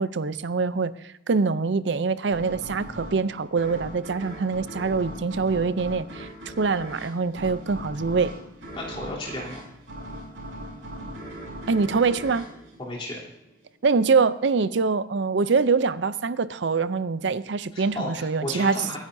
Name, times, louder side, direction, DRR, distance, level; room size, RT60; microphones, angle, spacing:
voice 1, 0.0-6.3 6.6-8.3 11.7-12.5 13.8-19.0, right 4 dB, 65° right, 15 dB, 0.5 m, -24 dB
sound 1, 2.3-13.6, right 1 dB, 85° right, 5.5 m, -39 dB
voice 2, 8.7-9.6 12.8-13.2 17.7-19.0, left 1 dB, 30° left, -4 dB, 3.4 m, -33 dB
24.0 x 10.0 x 2.7 m, 0.87 s
head